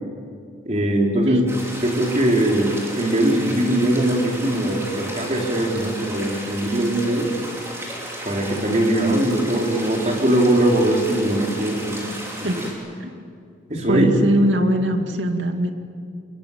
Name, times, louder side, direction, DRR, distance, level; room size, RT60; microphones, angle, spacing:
voice 1, 0.7-1.4 1.8-7.3 8.2-12.1 13.7-14.1, right 1 dB, 35° right, 0 dB, 4.0 m, -21 dB
sound 1, 1.5-12.7, right 1 dB, 15° right, 5.1 m, -34 dB
voice 2, 13.9-15.7, equal, 75° right, 5 dB, 2.4 m, -21 dB
25.5 x 23.0 x 8.7 m, 2.2 s
head